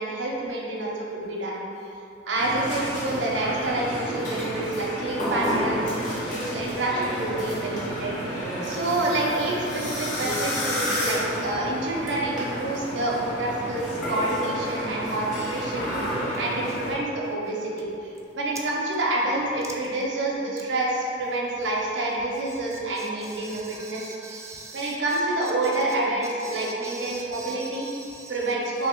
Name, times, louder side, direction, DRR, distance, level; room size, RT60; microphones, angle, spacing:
voice 1, 0.0-1.6 2.3-5.9 6.2-15.9 16.3-24.1 24.7-27.9 28.3-28.9, right 2 dB, 80° right, -3 dB, 0.6 m, -28 dB
sound 1, 2.3-16.9, equal, 45° left, 0.9 m, -30 dB
voice 2, 23.3-25.0 26.4-28.3, right 3 dB, 15° right, -1 dB, 0.3 m, -42 dB
3.1 x 2.9 x 3.6 m, 2.8 s
head